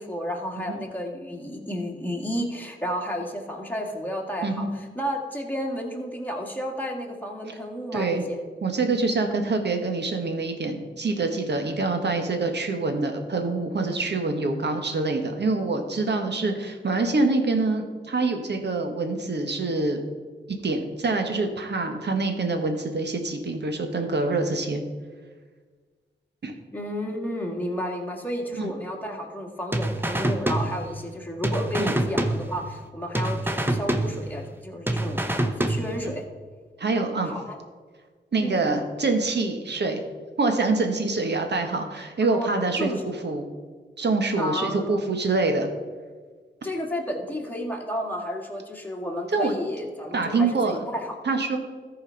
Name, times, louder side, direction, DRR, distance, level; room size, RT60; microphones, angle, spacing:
voice 1, 0.0-8.4 26.7-36.3 37.2-37.6 38.4-38.6 42.2-42.5 42.8-43.1 44.4-45.0 46.6-51.2, equal, 10° left, 0 dB, 1.9 m, -32 dB
voice 2, 7.9-8.2 8.6-20.0 20.6-24.8 26.4-26.5 28.5-28.7 31.8-31.9 36.0-36.1 36.8-37.3 38.3-40.0 40.4-42.9 43.2-43.5 44.0-45.7 49.3-49.5 50.1-50.8 51.2-51.6, right 3 dB, 60° right, 5 dB, 1.4 m, -25 dB
sound 1, 29.7-31.2 31.4-32.9 33.1-34.6 34.9-36.2, right 1 dB, 10° right, 0.9 m, -26 dB
13.5 x 4.7 x 5.8 m, 1.5 s
cardioid pair, 60°, 19 cm